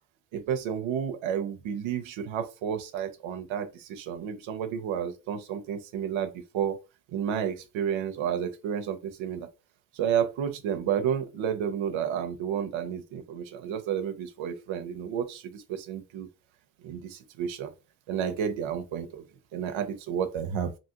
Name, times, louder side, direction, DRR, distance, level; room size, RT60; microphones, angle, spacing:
voice 1, 0.3-6.8 7.1-9.5 9.9-16.3 16.8-17.7 18.1-19.3 19.5-20.7, right 8 dB, 80° right, 0.6 m, -31 dB
2.8 x 2.4 x 2.8 m
cardioid pair, 75°, 46 cm